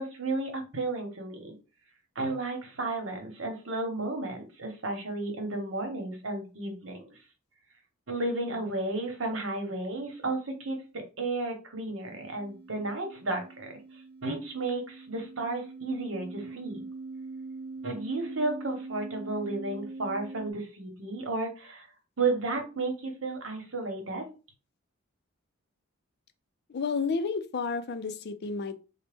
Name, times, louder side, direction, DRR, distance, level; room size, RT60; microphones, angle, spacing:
voice 1, 0.0-1.6 2.1-7.1 8.1-13.8 14.2-16.8 17.8-21.9 22.2-24.3, right 2 dB, 70° right, 1.0 m, -33 dB
sound 1, 12.1-20.5, right 3 dB, 50° right, 0.4 m, -43 dB
voice 2, 26.7-28.8, left 4 dB, 55° left, 0.4 m, -31 dB
4.0 x 2.1 x 3.4 m
head